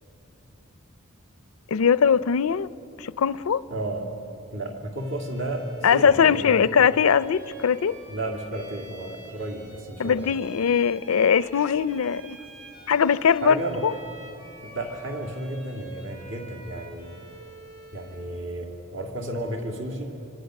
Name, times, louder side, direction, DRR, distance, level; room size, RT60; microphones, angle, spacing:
voice 1, 1.7-2.7 3.0-3.6 5.8-8.0 10.0-12.4 12.9-13.9, left 7 dB, 80° left, 0.5 m, -21 dB
voice 2, 3.7-4.2 4.5-6.7 8.1-10.4 13.4-13.9 14.6-17.2 17.9-20.2, right 1 dB, 60° right, 2.7 m, -33 dB
Bowed string instrument, 4.9-18.3, right 3 dB, 85° right, 6.2 m, -47 dB
26.5 x 25.0 x 6.5 m
head